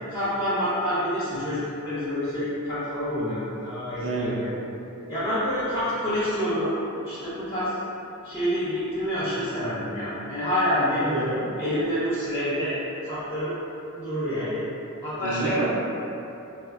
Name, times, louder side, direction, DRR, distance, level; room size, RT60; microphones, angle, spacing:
voice 1, 0.1-4.5 5.1-6.7 7.0-7.7 8.2-11.0 11.6-13.5 14.0-14.6 15.0-15.7, equal, 20° left, -14 dB, 0.5 m, -27 dB
voice 2, 4.0-4.4 10.9-11.5 15.2-15.7, right 2 dB, 60° right, -4 dB, 0.5 m, -28 dB
3.4 x 2.0 x 2.3 m, 2.9 s
head